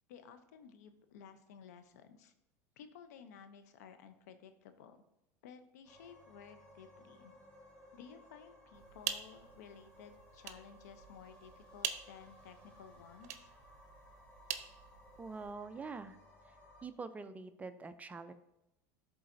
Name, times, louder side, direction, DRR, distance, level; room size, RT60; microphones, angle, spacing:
voice 1, 0.1-2.3 2.8-5.0 5.4-7.3 7.9-13.5, left 7 dB, 80° left, 9 dB, 0.7 m, -55 dB
sound 1, 5.8-16.9, left 1 dB, 15° left, 2.0 m, -60 dB
sound 2, 8.7-15.6, right 9 dB, 80° right, 0.6 m, -45 dB
voice 2, 15.2-16.2 16.8-18.3, right 4 dB, 15° right, 10 dB, 0.4 m, -45 dB
11.5 x 3.9 x 2.6 m, 0.87 s
supercardioid pair, 105°, 9 cm